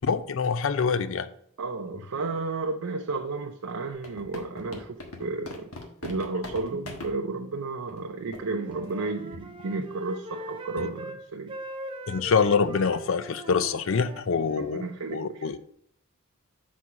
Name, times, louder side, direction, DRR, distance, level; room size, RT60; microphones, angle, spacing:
voice 1, 0.0-1.3 12.1-14.8 15.1-15.6, left 5 dB, 65° left, 0.4 m, -25 dB
voice 2, 1.6-5.7 6.0-11.5 14.6-15.5, right 3 dB, 90° right, 0.6 m, -32 dB
sound 1, 3.9-7.1 7.9-8.0 8.3-8.4 8.7-8.9 9.3-9.6, left 2 dB, 90° left, 1.3 m, -40 dB
Wind instrument woodwind instrument, 8.3-11.2 11.5-14.8, right 1 dB, 25° right, 0.6 m, -41 dB
6.1 x 4.1 x 6.0 m
head